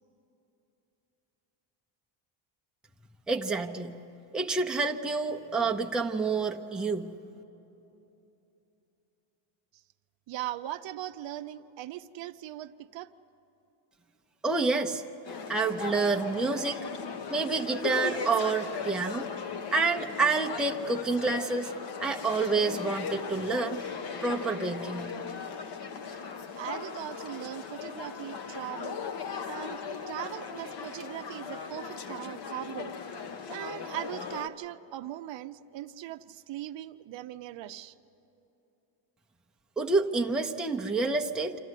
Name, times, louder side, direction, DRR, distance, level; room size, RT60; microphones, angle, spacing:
voice 1, 3.3-3.9 4.3-7.1 14.4-15.0 15.5-16.8 17.3-19.3 19.7-21.7 22.0-23.8 24.2-25.1 39.8-41.6, right 4 dB, ahead, 2 dB, 0.6 m, -28 dB
voice 2, 10.3-13.1 26.6-29.1 29.5-29.8 30.1-32.9 33.5-37.9, right 13 dB, 65° right, 10 dB, 0.6 m, -39 dB
sound 1, 15.2-34.5, left 6 dB, 55° left, 1.2 m, -38 dB
26.5 x 14.0 x 9.8 m, 3.0 s
cardioid pair, 165°, 49 cm